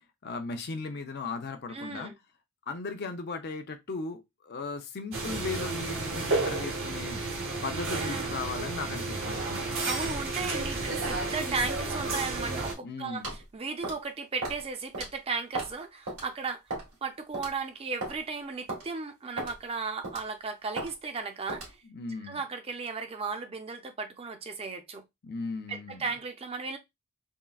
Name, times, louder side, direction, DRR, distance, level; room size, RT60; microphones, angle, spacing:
voice 1, 0.2-2.1 2.7-7.2 7.6-9.7 12.8-13.3 21.8-22.4 25.2-26.1, left 4 dB, 45° left, 0.5 m, -37 dB
voice 2, 1.7-2.1 8.0-8.3 9.7-16.6 17.0-21.8 22.3-25.0 25.7-26.8, right 4 dB, 25° right, 0.4 m, -35 dB
sound 1, 5.1-12.7, right 3 dB, 60° right, 0.8 m, -32 dB
sound 2, 13.2-13.4 13.8-14.1 14.4-14.6 14.9-15.1 15.5-15.8 16.1-16.2 16.7-16.9 17.3-17.5 18.0-18.2 18.7-18.8 19.4-19.6 20.0-20.3 20.8-20.9 21.5-21.7, right 2 dB, 90° right, 1.9 m, -35 dB
3.7 x 2.1 x 2.3 m
head